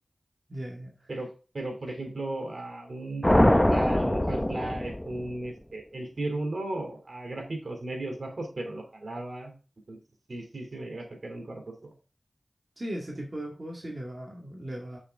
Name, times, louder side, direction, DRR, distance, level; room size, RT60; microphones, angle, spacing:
voice 1, 0.5-1.1 12.8-15.0, right 1 dB, 45° right, -1 dB, 2.0 m, -37 dB
voice 2, 1.1-9.5 9.9-10.0 10.3-11.9, right 2 dB, 65° right, 3 dB, 2.9 m, -35 dB
sound 1, 3.2-5.5, left 1 dB, 15° left, 0.6 m, -23 dB
8.5 x 7.0 x 3.6 m, 0.35 s
wide cardioid pair, 60°, 0 cm